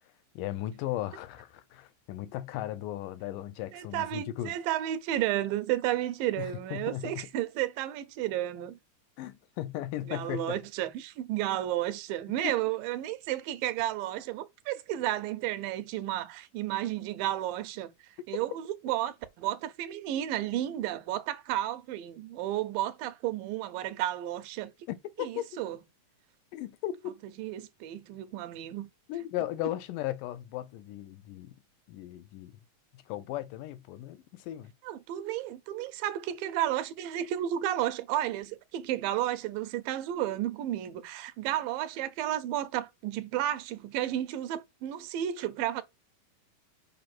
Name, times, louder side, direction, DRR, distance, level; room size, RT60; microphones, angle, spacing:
voice 1, 0.4-4.6 6.4-7.1 9.2-10.6 12.4-12.5 24.9-25.5 26.5-27.2 29.1-31.6 31.9-32.5 33.1-34.7, left 13 dB, 80° left, 2.2 m, -36 dB
voice 2, 3.7-8.8 10.1-17.9 18.3-24.7 25.2-25.8 27.4-28.9 34.8-45.8, right 13 dB, 90° right, 2.5 m, -32 dB
5.5 x 5.2 x 5.9 m
omnidirectional pair, 3.9 m